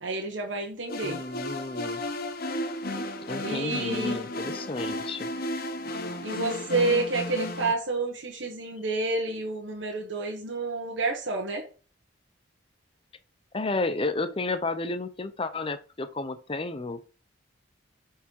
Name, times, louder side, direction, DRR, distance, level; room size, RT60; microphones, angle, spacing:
voice 1, 0.0-1.2 3.4-4.2 6.2-11.6, right 3 dB, 70° right, 1.4 m, -29 dB
sound 1, 0.9-7.7, left 1 dB, 50° left, 1.0 m, -33 dB
voice 2, 1.0-2.1 3.3-5.3 13.5-17.0, left 3 dB, 30° left, 0.7 m, -32 dB
8.6 x 4.7 x 4.7 m
head